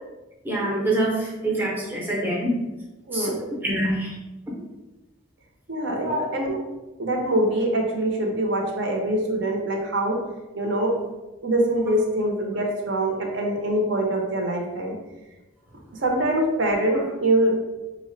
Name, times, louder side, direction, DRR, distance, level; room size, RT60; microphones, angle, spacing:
voice 1, 0.4-2.5 3.1-3.3 3.6-4.2 6.0-6.2, right 1 dB, 10° right, -4 dB, 0.5 m, -25 dB
voice 2, 5.7-6.6 7.0-10.2 10.5-11.0 11.4-14.9 16.0-17.6, right 1 dB, 60° right, 1 dB, 0.6 m, -24 dB
3.4 x 2.1 x 3.8 m, 1.1 s
head